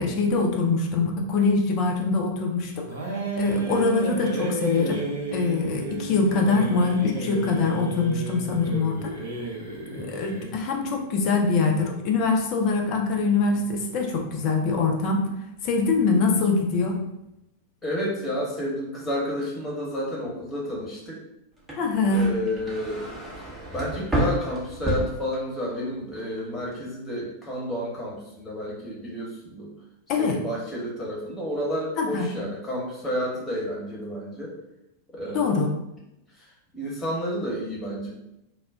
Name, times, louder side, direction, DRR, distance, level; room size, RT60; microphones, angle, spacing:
voice 1, 0.0-2.9 3.4-5.0 5.3-9.1 9.9-15.3 15.6-17.0 21.8-22.3 30.1-30.4 32.0-32.3 35.3-35.7, left 4 dB, 40° left, 2 dB, 0.5 m, -23 dB
sound 1, 2.9-10.6, right 3 dB, 65° right, 0.6 m, -32 dB
voice 2, 3.5-3.8 9.8-10.1 13.5-13.7 17.8-21.2 22.1-23.1 23.7-29.7 30.2-34.5 35.1-35.5 36.4-36.5 36.7-38.1, equal, 15° left, -4 dB, 1.0 m, -31 dB
sound 2, 21.6-25.8 26.2-26.7, right 1 dB, 10° right, 0.7 m, -30 dB
2.2 x 2.0 x 3.5 m, 0.86 s
figure-of-eight pair, 90°, 0 cm